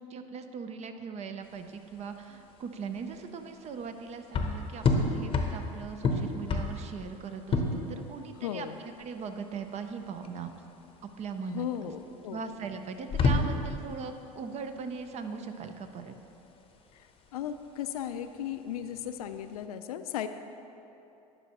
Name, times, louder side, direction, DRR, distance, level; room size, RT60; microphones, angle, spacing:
voice 1, 0.1-8.7 9.0-10.5 11.2-11.9 12.3-16.1, right 5 dB, 35° right, 8 dB, 0.6 m, -39 dB
sound 1, 1.4-19.6, left 3 dB, 30° left, 0.8 m, -32 dB
voice 2, 8.4-8.8 11.5-12.4 16.9-20.3, left 10 dB, 80° left, 10 dB, 0.4 m, -36 dB
11.0 x 5.4 x 2.9 m, 2.9 s
hypercardioid pair, 80°, 19 cm